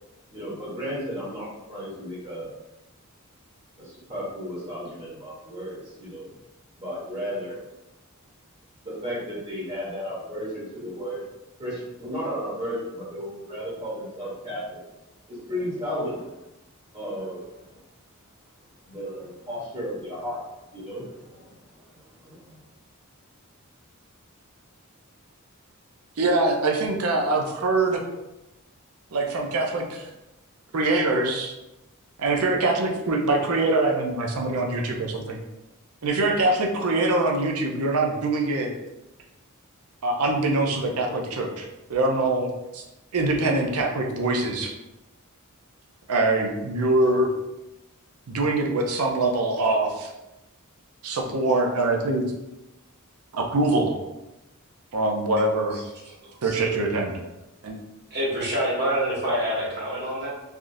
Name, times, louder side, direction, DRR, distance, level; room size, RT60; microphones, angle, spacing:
voice 1, 0.3-2.5 3.8-6.3 6.8-7.6 8.8-11.3 11.6-14.8 15.3-16.2 16.9-17.7 18.9-20.4 20.7-21.6 22.3-22.6, equal, 25° right, -7 dB, 1.0 m, -34 dB
voice 2, 26.2-28.0 29.1-30.1 30.7-31.5 32.2-35.4 36.0-38.7 40.0-42.8 43.1-44.7 46.1-47.3 48.3-50.1 51.0-52.2 53.3-54.0 54.9-55.8 56.4-57.2 57.6-57.8, right 2 dB, 85° right, 2 dB, 0.6 m, -24 dB
voice 3, 55.7-56.5 58.1-60.3, equal, 50° right, -5 dB, 1.2 m, -27 dB
3.5 x 2.4 x 2.6 m, 0.97 s
head